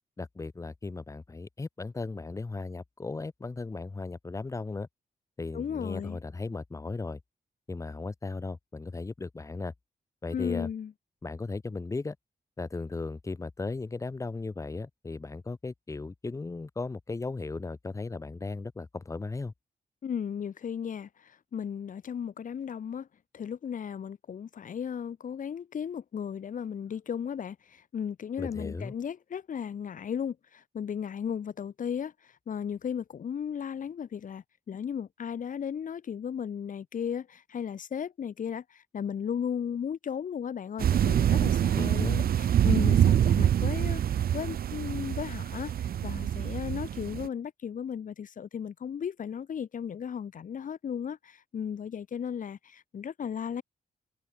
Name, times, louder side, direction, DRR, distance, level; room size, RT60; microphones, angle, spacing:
voice 1, 0.2-4.9 5.4-7.2 7.7-9.7 10.2-10.7 11.2-12.1 12.6-19.5 28.4-28.9 41.8-42.3, left 3 dB, 20° left, 1.6 m, -36 dB
voice 2, 5.5-6.2 10.3-10.9 20.0-23.1 23.3-53.6, left 8 dB, 60° left, 6.2 m, -35 dB
sound 1, 40.8-47.3, right 10 dB, 80° right, 1.4 m, -25 dB
wide cardioid pair, 165°, 15 cm